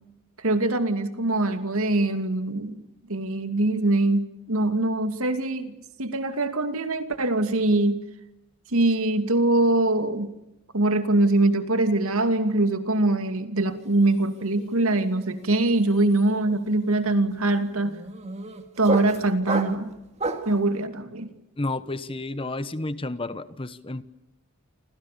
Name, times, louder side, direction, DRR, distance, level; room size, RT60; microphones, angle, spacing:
voice 1, 0.4-2.8 3.1-8.0 8.7-10.3 10.7-18.0 18.8-19.9 20.5-21.3, right 2 dB, 70° right, 9 dB, 2.7 m, -23 dB
sound 1, 13.8-14.1 14.4-20.6, right 2 dB, 30° right, 2.4 m, -33 dB
voice 2, 21.6-24.0, left 2 dB, 25° left, 14 dB, 1.1 m, -31 dB
29.0 x 26.5 x 6.9 m, 0.91 s
head